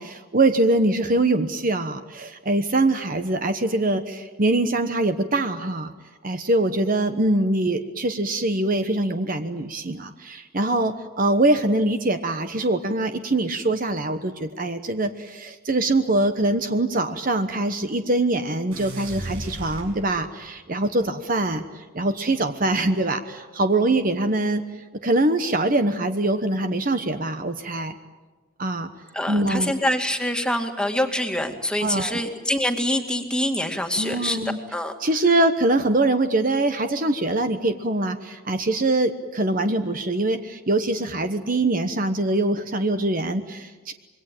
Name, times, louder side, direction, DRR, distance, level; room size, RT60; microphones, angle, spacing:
voice 1, 0.0-5.9 6.2-24.6 25.0-27.9 28.6-28.9 29.3-29.7 31.8-32.2 34.0-34.6 35.0-43.9, right 2 dB, 40° right, 8 dB, 1.1 m, -23 dB
sound 1, 18.7-20.5, right 1 dB, 80° right, 7.9 m, -35 dB
voice 2, 29.1-34.4 34.7-34.9, left 1 dB, 5° left, 4 dB, 2.2 m, -25 dB
26.5 x 22.5 x 9.1 m, 1.3 s
head